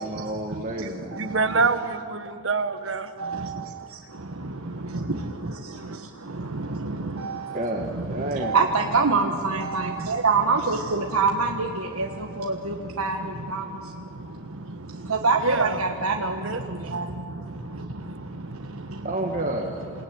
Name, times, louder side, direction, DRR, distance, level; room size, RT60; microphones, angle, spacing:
voice 1, 0.0-1.4 7.5-8.6 19.0-19.9, right 1 dB, 35° right, 1 dB, 1.6 m, -30 dB
voice 2, 0.8-3.1 15.4-15.8 16.4-16.6, right 4 dB, 60° right, 10 dB, 1.4 m, -26 dB
voice 3, 6.5-7.3 8.4-11.7 12.0-12.1 12.4-13.2 13.5-13.6 15.1-16.3 16.9-17.0, right 4 dB, 90° right, 2 dB, 1.5 m, -24 dB
28.0 x 19.0 x 9.6 m, 2.5 s
head